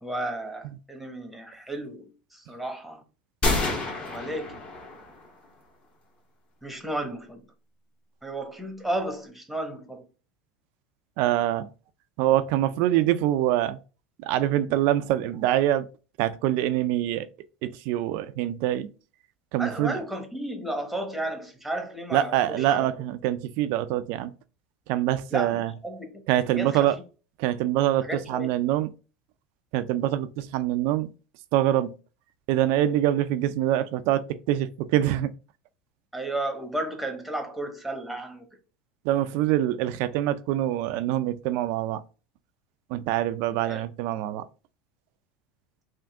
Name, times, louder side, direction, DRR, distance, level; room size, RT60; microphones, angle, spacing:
voice 1, 0.0-3.0 4.1-4.6 6.6-7.4 8.2-10.0 19.6-22.9 25.3-26.1 26.5-27.0 28.0-28.5 36.1-38.5 43.7-43.8, right 1 dB, ahead, 1.0 m, -33 dB
sound 1, 3.4-5.3, left 2 dB, 35° left, 1.5 m, -28 dB
voice 2, 11.2-11.7 12.2-13.8 14.2-15.9 16.2-17.3 17.6-18.9 19.5-20.0 22.1-24.3 24.9-25.7 26.3-27.0 27.4-28.9 29.7-31.1 31.5-31.9 32.5-35.3 39.0-42.0 42.9-44.4, right 13 dB, 65° right, 0.4 m, -25 dB
3.6 x 2.5 x 3.4 m
hypercardioid pair, 90°, 4 cm